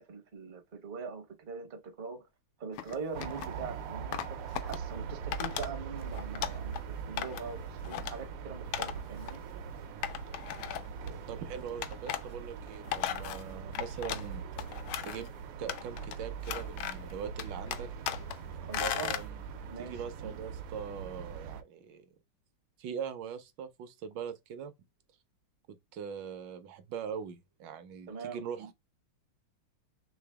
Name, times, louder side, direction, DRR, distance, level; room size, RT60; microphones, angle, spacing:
voice 1, 0.0-2.2 2.6-9.4 18.6-19.2 19.7-20.0 28.1-28.4, right 5 dB, 50° right, 0.5 m, -42 dB
sound 1, 2.8-3.5 4.1-4.8 5.3-5.7 6.0-6.8 7.2-7.5 7.8-8.1 8.7-9.0 9.3-9.4 10.0-11.1 11.8-12.2 12.7-14.3 14.6-15.3 15.7-16.2 16.4-17.1 17.4-18.4 18.7-19.3, left 11 dB, 80° left, 1.4 m, -36 dB
sound 2, 3.1-21.6, right 6 dB, 90° right, 1.6 m, -42 dB
voice 2, 11.3-14.4 15.0-17.9 18.8-19.4 19.8-22.1 22.8-24.7 25.9-28.7, right 7 dB, 70° right, 1.1 m, -41 dB
3.9 x 3.3 x 3.4 m
omnidirectional pair, 2.4 m